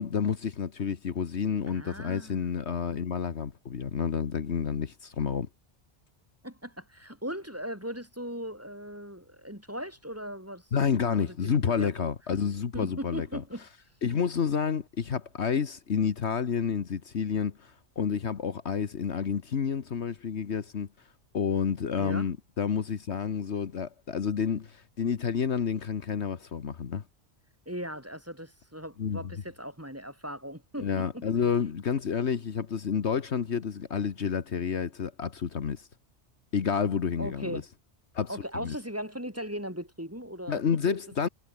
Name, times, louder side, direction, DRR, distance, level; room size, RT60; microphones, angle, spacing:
voice 1, 0.0-5.5 10.7-13.4 14.0-20.9 21.3-27.0 29.0-29.3 30.8-35.9 36.5-37.6 38.1-38.8 40.5-41.3, left 6 dB, 65° left, 1.5 m, -29 dB
voice 2, 1.7-2.5 6.4-10.7 11.2-12.1 12.7-13.6 22.0-22.3 27.7-31.2 37.2-37.7 38.3-40.6 40.9-41.0, equal, 10° right, 4.8 m, -38 dB
omnidirectional pair, 1.2 m